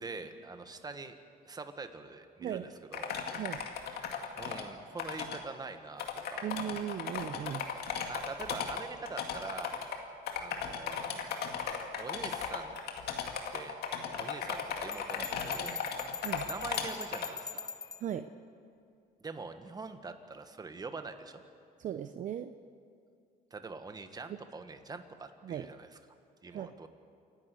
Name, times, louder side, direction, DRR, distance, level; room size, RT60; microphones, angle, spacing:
voice 1, 0.0-1.1 1.4-3.1 4.4-6.4 8.1-9.8 10.4-11.2 12.0-12.7 13.5-13.8 14.2-15.8 16.4-17.7 19.2-21.4 23.5-26.0 26.4-26.9, right 4 dB, 25° right, 8 dB, 1.5 m, -44 dB
voice 2, 2.4-2.7 3.4-3.6 6.4-7.7 16.2-16.5 18.0-18.3 21.8-22.5 25.4-25.7 26.5-26.7, right 10 dB, 50° right, 9 dB, 0.7 m, -37 dB
sound 1, 2.9-4.6 5.0-5.4 5.7-5.8 6.0-10.0 10.3-17.3, left 7 dB, 70° left, 2.3 m, -36 dB
Bell, 14.9-18.1, left 5 dB, 25° left, 0.9 m, -43 dB
28.5 x 11.5 x 8.4 m, 2.4 s
cardioid pair, 110°, 17 cm